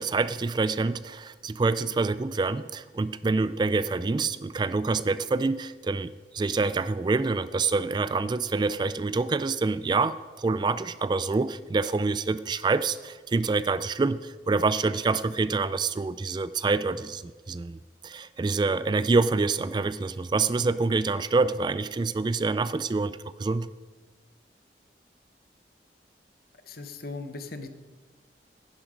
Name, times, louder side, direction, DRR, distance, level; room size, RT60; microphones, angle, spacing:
voice 1, 0.0-23.7, right 3 dB, 25° right, 14 dB, 0.3 m, -26 dB
voice 2, 26.7-27.7, left 3 dB, 55° left, 8 dB, 1.0 m, -38 dB
15.5 x 10.5 x 5.1 m, 1.4 s
head